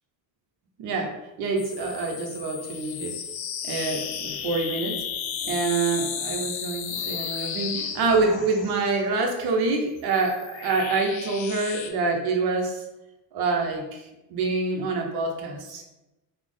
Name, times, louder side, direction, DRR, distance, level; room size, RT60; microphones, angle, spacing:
voice 1, 0.8-3.1 3.6-5.0 5.4-12.8 13.3-14.0 14.3-15.9, right 3 dB, 55° right, 2 dB, 0.7 m, -26 dB
sound 1, 1.6-8.9 9.8-11.9, left 7 dB, 80° left, 0.6 m, -34 dB
3.3 x 2.0 x 3.7 m, 1.0 s
cardioid pair, 175°, 47 cm